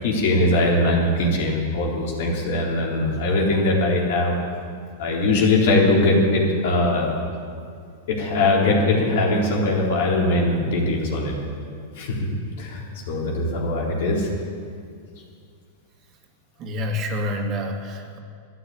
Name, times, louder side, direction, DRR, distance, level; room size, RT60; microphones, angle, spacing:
voice 1, 0.0-4.4 5.0-7.1 8.1-11.4 12.0-12.3 12.6-14.3, left 2 dB, 65° left, -2 dB, 3.8 m, -21 dB
voice 2, 16.6-18.2, left 1 dB, 40° right, 3 dB, 2.2 m, -28 dB
13.5 x 10.0 x 8.6 m, 2.3 s
hypercardioid pair, 105°, 0 cm